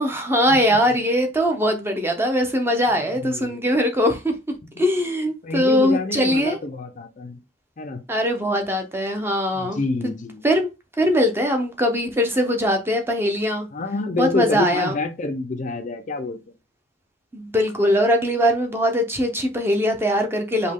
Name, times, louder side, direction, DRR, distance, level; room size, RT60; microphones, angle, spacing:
voice 1, 0.0-4.3 4.8-6.6 8.1-9.8 10.4-10.7 11.0-13.7 14.2-14.9 17.3-20.7, equal, 10° right, 0.7 m, -21 dB
voice 2, 3.2-3.7 4.8-4.9 5.4-7.4 7.8-8.0 9.5-10.4 13.7-16.4, left 3 dB, 40° left, 0.5 m, -28 dB
5.2 x 2.2 x 3.5 m
head